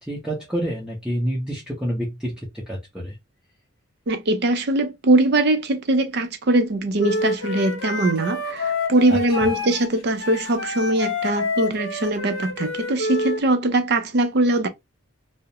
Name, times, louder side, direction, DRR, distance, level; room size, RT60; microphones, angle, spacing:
voice 1, 0.1-3.1 9.1-9.2, equal, 5° right, 0.6 m, -28 dB
voice 2, 4.1-14.7, right 1 dB, 50° right, 0.4 m, -21 dB
Wind instrument woodwind instrument, 7.0-13.4, left 2 dB, 65° left, 0.7 m, -28 dB
2.4 x 2.0 x 2.7 m
head